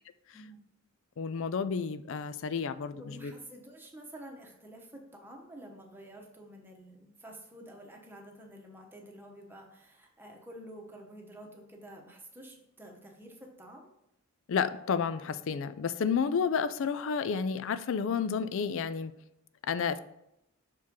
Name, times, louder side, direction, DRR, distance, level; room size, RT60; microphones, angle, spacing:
voice 1, 0.3-0.6 3.0-13.9, right 1 dB, 10° right, 0 dB, 1.0 m, -49 dB
voice 2, 1.2-3.3 14.5-19.1 19.6-20.0, left 6 dB, 60° left, 14 dB, 0.4 m, -31 dB
6.2 x 4.5 x 3.6 m, 0.83 s
head